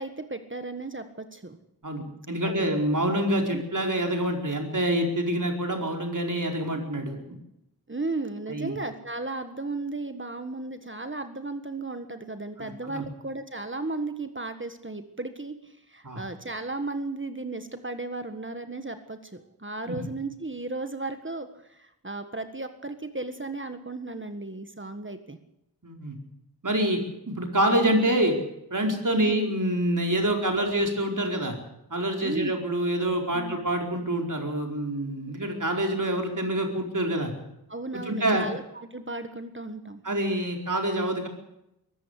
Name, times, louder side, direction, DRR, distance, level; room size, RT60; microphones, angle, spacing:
voice 1, 0.0-1.6 2.4-2.8 3.5-3.6 7.9-25.4 29.1-29.3 32.2-32.5 33.3-33.6 37.7-40.0, right 2 dB, 30° right, 8 dB, 1.6 m, -35 dB
voice 2, 1.8-7.4 8.5-8.8 12.6-13.0 16.0-16.2 19.9-20.0 25.8-26.2 26.6-28.4 28.7-31.6 31.9-37.3 37.9-38.5 40.0-41.3, right 1 dB, 50° right, 3 dB, 4.6 m, -26 dB
22.5 x 14.5 x 8.3 m, 0.84 s
wide cardioid pair, 75°, 39 cm